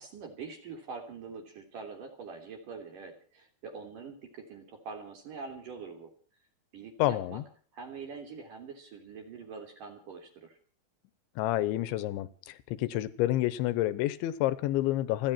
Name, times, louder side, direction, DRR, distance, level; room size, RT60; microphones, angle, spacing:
voice 1, 0.0-6.1 6.7-7.4 7.7-10.6, right 5 dB, 50° right, 4.4 m, -44 dB
voice 2, 7.0-7.4 11.4-15.3, left 15 dB, 80° left, 3.4 m, -29 dB
29.5 x 10.0 x 4.4 m
omnidirectional pair, 5.3 m